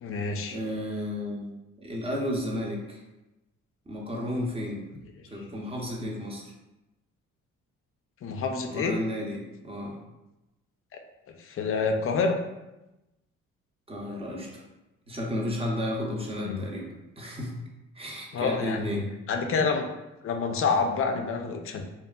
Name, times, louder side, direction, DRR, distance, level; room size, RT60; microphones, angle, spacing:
voice 1, 0.0-0.6 8.2-9.0 10.9-11.0 11.4-12.4 16.4-16.6 18.3-19.0 19.3-19.9 20.2-21.8, left 4 dB, 45° left, 4 dB, 0.4 m, -27 dB
voice 2, 0.5-1.5 1.8-3.0 3.9-4.8 5.3-6.4 8.7-10.0 13.9-14.6 15.1-17.5 17.9-19.0, left 1 dB, 20° right, -2 dB, 0.6 m, -33 dB
2.7 x 2.4 x 2.3 m, 0.97 s
cardioid pair, 90°, 30 cm